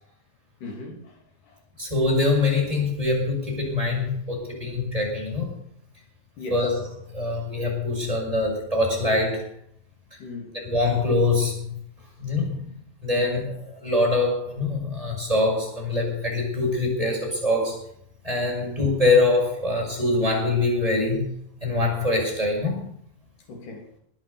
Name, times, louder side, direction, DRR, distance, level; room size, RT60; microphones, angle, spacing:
voice 1, 0.6-1.2 1.4-1.6 6.4-6.7 10.2-10.6 18.6-18.8 23.5-23.9, left 2 dB, 65° left, 4.5 m, -38 dB
voice 2, 1.8-5.5 6.5-6.7 7.1-9.4 10.5-11.8 12.2-12.6 13.0-17.8 18.2-21.3 21.6-22.9, left 2 dB, 10° right, 6.1 m, -24 dB
21.0 x 8.9 x 7.0 m
omnidirectional pair, 4.0 m